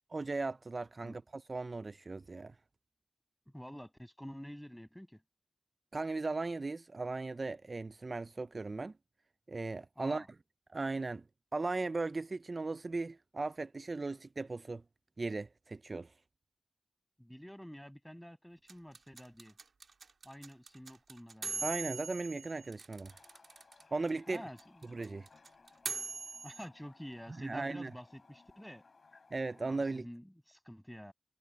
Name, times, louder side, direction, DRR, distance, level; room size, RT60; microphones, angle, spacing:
voice 1, 0.1-2.5 5.9-8.9 9.5-10.3 10.7-11.2 11.5-14.8 15.2-16.1 21.6-23.1 23.9-24.4 24.9-25.3 27.4-27.9 29.3-30.0, right 3 dB, 45° right, 0.4 m, -37 dB
voice 2, 3.5-5.2 9.9-10.3 17.2-19.6 20.2-21.7 24.3-25.0 26.4-28.9 29.6-31.1, equal, 5° left, 6.4 m, -49 dB
sound 1, 18.7-23.8 24.1-24.2 24.3-26.7, right 4 dB, 75° right, 2.0 m, -41 dB
Toilet flush, 23.1-30.0, left 4 dB, 65° left, 5.4 m, -62 dB
cardioid pair, 55°, 0 cm